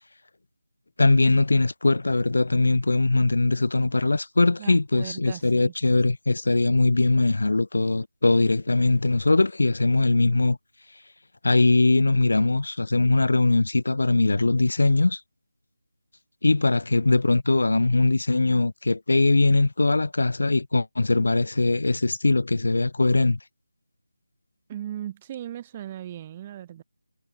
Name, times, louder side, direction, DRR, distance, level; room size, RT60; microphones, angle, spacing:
voice 1, 1.0-10.6 11.4-15.2 16.4-23.4, left 2 dB, 55° left, 1.7 m, -21 dB
voice 2, 4.6-5.7 24.7-26.8, right 11 dB, 10° right, 3.1 m, -37 dB
figure-of-eight pair, 180°, 0 cm